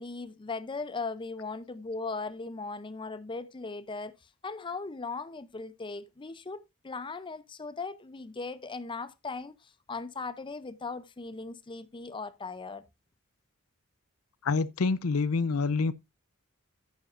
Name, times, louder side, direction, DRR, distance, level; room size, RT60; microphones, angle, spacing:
voice 1, 0.0-4.1 4.4-12.9, left 3 dB, 25° left, 0.6 m, -38 dB
voice 2, 14.4-15.9, left 4 dB, 80° left, 0.6 m, -27 dB
10.0 x 9.3 x 2.5 m
head